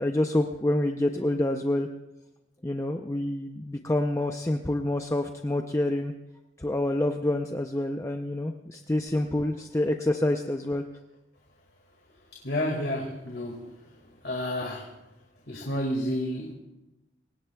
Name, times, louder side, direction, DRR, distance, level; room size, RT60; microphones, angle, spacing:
voice 1, 0.0-1.9 2.6-6.1 6.6-10.8, left 1 dB, 15° left, 4 dB, 0.6 m, -27 dB
voice 2, 12.3-13.6 14.2-14.9 15.5-16.5, left 1 dB, 70° left, -1 dB, 2.0 m, -30 dB
27.0 x 17.5 x 2.3 m, 0.98 s
head